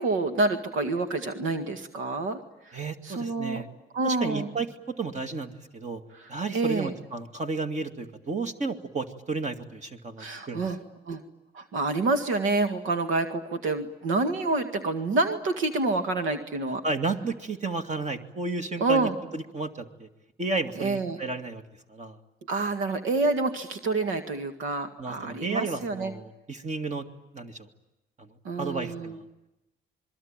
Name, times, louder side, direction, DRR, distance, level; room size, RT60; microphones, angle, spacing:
voice 1, 0.0-2.4 2.7-2.8 3.0-3.6 3.9-4.5 6.1-6.9 10.2-10.8 11.1-11.2 11.5-16.8 18.8-19.1 20.8-21.2 22.5-26.1 28.4-29.2, right 3 dB, 85° right, 7 dB, 2.0 m, -28 dB
voice 2, 2.7-3.7 4.0-4.7 5.0-6.0 6.3-10.7 16.8-20.1 20.4-21.6 21.9-22.2 25.0-27.0 27.3-27.7 28.2-28.3 28.6-29.2, right 3 dB, 35° right, 6 dB, 2.3 m, -32 dB
26.5 x 22.5 x 9.0 m, 0.95 s
cardioid pair, 90°, 20 cm